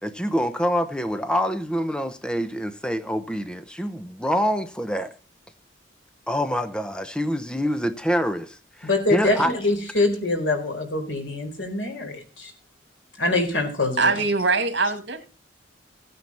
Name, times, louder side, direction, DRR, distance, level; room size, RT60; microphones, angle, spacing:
voice 1, 0.0-5.1 6.3-9.5, equal, 5° left, 0.8 m, -26 dB
voice 2, 8.8-12.5 13.2-14.1, left 2 dB, 90° left, 4.2 m, -24 dB
voice 3, 14.0-15.2, right 4 dB, 70° right, 2.3 m, -22 dB
16.0 x 9.5 x 4.3 m
head